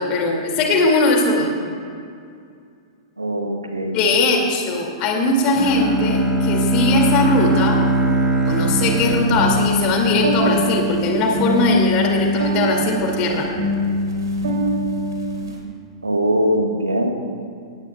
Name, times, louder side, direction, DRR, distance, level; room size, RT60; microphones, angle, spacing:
voice 1, 0.0-1.5 3.9-7.8 8.5-13.5, left 2 dB, 35° left, 1 dB, 2.4 m, -19 dB
voice 2, 3.2-4.0 16.0-17.1, equal, 80° right, 3 dB, 1.5 m, -21 dB
Bowed string instrument, 5.6-10.6, right 1 dB, ahead, 1.5 m, -21 dB
sound 1, 8.4-15.6, equal, 65° right, 2.9 m, -23 dB
18.0 x 18.0 x 2.4 m, 2.3 s
figure-of-eight pair, 105°, 2 cm